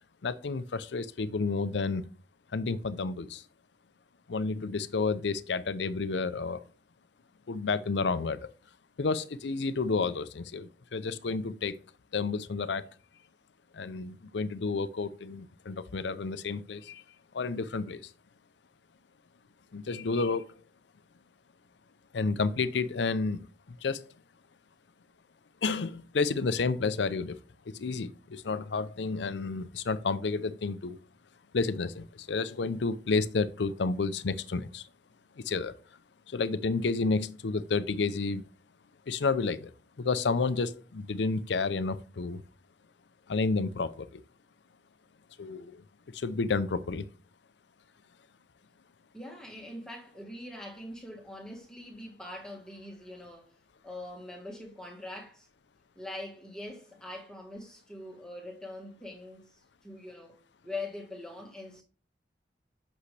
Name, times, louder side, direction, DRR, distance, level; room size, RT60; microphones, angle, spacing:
voice 1, 0.2-2.0 2.5-3.4 4.3-6.6 7.5-8.5 9.0-11.8 12.1-12.8 13.7-17.0 17.3-18.0 19.7-20.5 22.1-24.0 25.6-27.4 27.7-31.0 31.5-34.9 35.4-35.7 36.3-38.4 39.1-39.7 40.0-42.4 43.3-44.2 45.4-45.7 46.1-47.1, left 4 dB, 85° left, 0.5 m, -30 dB
voice 2, 49.1-53.5 53.8-55.5 55.9-60.4 60.6-61.8, left 2 dB, 5° left, 1.5 m, -43 dB
8.3 x 6.3 x 3.3 m
head